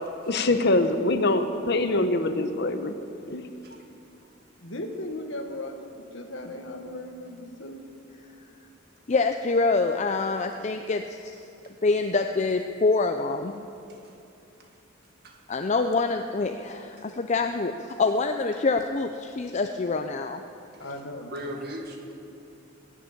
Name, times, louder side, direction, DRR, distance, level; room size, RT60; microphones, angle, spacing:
voice 1, 0.3-2.9 3.3-3.5, left 2 dB, 60° left, 8 dB, 0.9 m, -24 dB
voice 2, 4.6-7.8 20.8-21.3, left 1 dB, 75° left, 4 dB, 1.7 m, -37 dB
voice 3, 9.1-11.0 11.8-13.7 15.5-20.4, left 3 dB, 35° left, 5 dB, 0.5 m, -25 dB
voice 4, 15.2-15.6 20.7-20.9 21.3-22.1, equal, 55° right, 2 dB, 1.8 m, -39 dB
20.5 x 7.3 x 8.7 m, 2.7 s
head